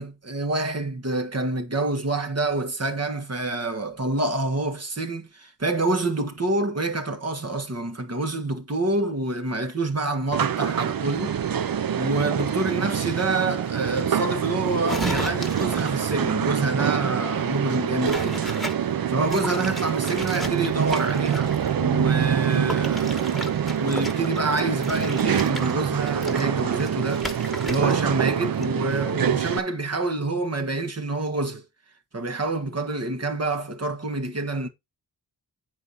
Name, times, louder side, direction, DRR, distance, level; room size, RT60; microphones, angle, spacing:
voice 1, 0.0-18.5 19.1-23.5 23.8-31.7 32.1-34.7, right 2 dB, 35° right, 1.6 m, -27 dB
sound 1, 10.3-29.6, right 8 dB, 55° right, 0.7 m, -25 dB
sound 2, 14.8-16.1 18.0-18.8 19.3-21.7 22.7-28.1 28.4-28.7, equal, ahead, 1.8 m, -35 dB
7.8 x 4.8 x 4.2 m
cardioid pair, 45°, 42 cm